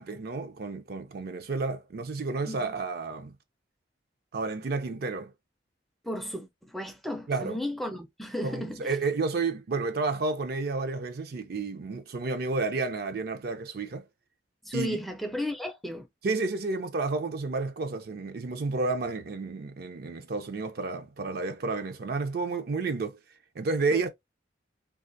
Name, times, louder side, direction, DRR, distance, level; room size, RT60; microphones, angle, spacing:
voice 1, 0.0-3.3 4.3-5.3 7.3-7.6 8.4-14.0 14.7-15.0 16.2-23.2 23.6-24.1, right 3 dB, 55° right, 0.5 m, -31 dB
voice 2, 6.0-8.9 14.6-16.1 23.9-24.1, left 1 dB, ahead, 0.4 m, -34 dB
3.2 x 2.3 x 2.5 m
head